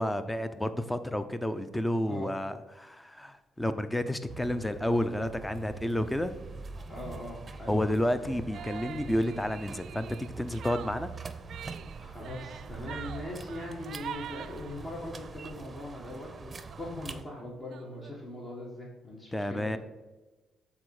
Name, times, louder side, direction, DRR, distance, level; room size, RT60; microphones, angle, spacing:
voice 1, 0.0-6.3 7.7-11.1 19.3-19.8, left 1 dB, 10° left, 11 dB, 0.5 m, -30 dB
sound 1, 4.3-17.2, right 4 dB, 30° right, 0.6 m, -44 dB
voice 2, 6.9-7.8 12.0-19.8, left 1 dB, 35° left, -3 dB, 1.7 m, -41 dB
sound 2, 8.5-15.3 15.8-16.1 16.4-16.5 16.7-18.1, right 9 dB, 70° right, 0.3 m, -45 dB
8.4 x 4.2 x 4.8 m, 1.1 s
cardioid pair, 90°, 0 cm